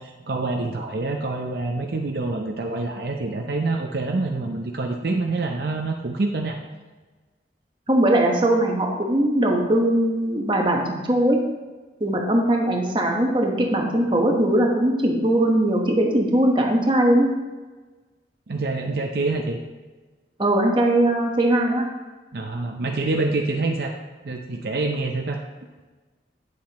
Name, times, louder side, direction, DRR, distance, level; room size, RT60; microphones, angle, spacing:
voice 1, 0.0-6.6 12.1-12.2 18.5-19.6 22.3-23.9 24.2-25.4, right 3 dB, 60° right, 2 dB, 0.6 m, -26 dB
voice 2, 7.9-11.4 12.0-17.3 20.4-21.8, right 1 dB, 25° right, 0 dB, 1.1 m, -20 dB
9.1 x 7.3 x 3.0 m, 1.3 s
head